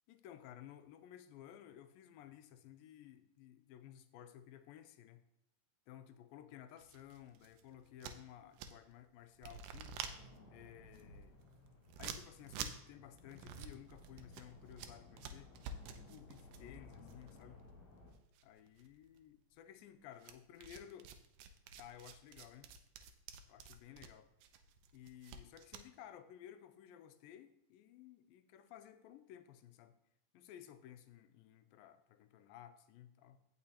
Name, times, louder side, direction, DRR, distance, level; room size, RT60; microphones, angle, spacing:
voice 1, 0.1-5.2 5.9-10.0 10.5-11.4 12.0-15.5 16.0-17.6 18.4-21.1 21.8-22.7 23.5-24.3 24.9-29.9 30.3-33.4, left 11 dB, 85° left, 10 dB, 2.4 m, -56 dB
sound 1, 6.8-9.0 9.3-18.1 18.4-19.2 20.2-25.9, right 6 dB, 80° right, 2.1 m, -50 dB
sound 2, 10.0-18.1, left 2 dB, 55° left, 3.7 m, -59 dB
16.0 x 5.7 x 2.9 m, 0.79 s
omnidirectional pair, 4.0 m